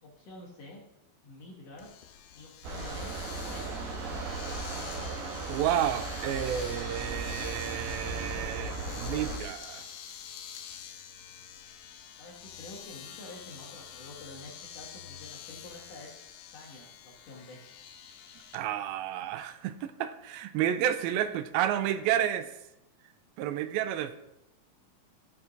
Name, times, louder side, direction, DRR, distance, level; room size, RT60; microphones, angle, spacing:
voice 1, 0.0-0.8 1.2-1.9 2.3-3.2 3.5-3.8 12.2-16.2 16.5-17.6, left 2 dB, 55° left, -2 dB, 2.1 m, -48 dB
Domestic sounds home sounds, 1.8-18.6, left 8 dB, 90° left, 2.6 m, -46 dB
sound 1, 2.6-9.4, right 3 dB, 70° right, 2.6 m, -37 dB
voice 2, 5.5-9.9 18.5-22.5 23.4-24.2, right 11 dB, 90° right, 11 dB, 2.5 m, -31 dB
15.5 x 7.0 x 2.7 m, 0.89 s
omnidirectional pair, 4.2 m